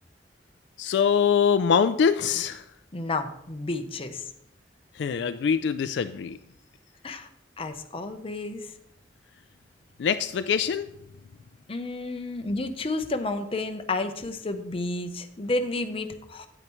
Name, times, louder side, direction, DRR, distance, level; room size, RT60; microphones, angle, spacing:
voice 1, 0.8-2.6 5.0-6.4 10.0-10.9, left 7 dB, 70° left, 11 dB, 0.3 m, -23 dB
voice 2, 2.9-4.3 7.0-7.3 7.6-8.7 11.7-16.5, left 2 dB, 30° left, 7 dB, 0.7 m, -31 dB
9.1 x 8.9 x 3.1 m, 0.77 s
head